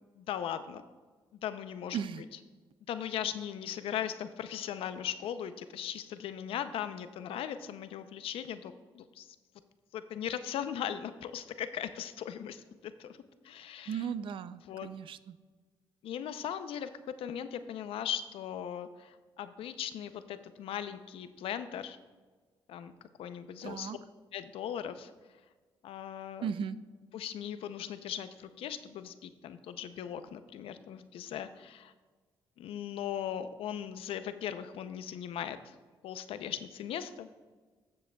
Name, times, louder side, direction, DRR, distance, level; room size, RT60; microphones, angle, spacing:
voice 1, 0.2-0.8 1.4-2.0 2.9-9.4 9.9-13.2 13.4-14.1 14.7-14.9 16.0-16.9 17.2-22.0 22.7-22.9 23.2-23.9 24.3-25.1 25.8-26.5 27.1-31.9 32.6-35.7 36.0-37.3, left 9 dB, 80° left, 11 dB, 0.5 m, -38 dB
voice 2, 13.9-15.4 23.6-24.0 26.4-26.8, right 7 dB, 65° right, 14 dB, 0.4 m, -36 dB
14.0 x 7.5 x 2.2 m, 1.4 s
cardioid pair, 85°, 9 cm